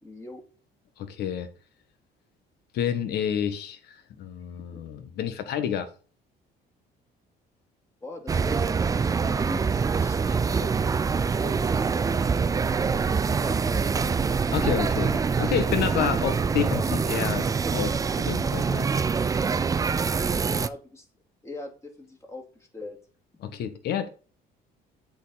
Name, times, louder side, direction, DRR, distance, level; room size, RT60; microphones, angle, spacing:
voice 1, 0.0-0.4 4.7-4.8 8.0-10.7 11.4-12.4 12.9-14.5 20.4-21.1 21.4-22.4 22.7-23.0, left 2 dB, 15° left, 2.5 m, -42 dB
voice 2, 1.0-1.5 2.7-5.9 14.5-18.9 23.4-24.1, left 9 dB, 75° left, 1.3 m, -29 dB
sound 1, 8.3-20.7, right 5 dB, 20° right, 0.4 m, -25 dB
8.1 x 4.5 x 4.0 m
cardioid pair, 110°, 17 cm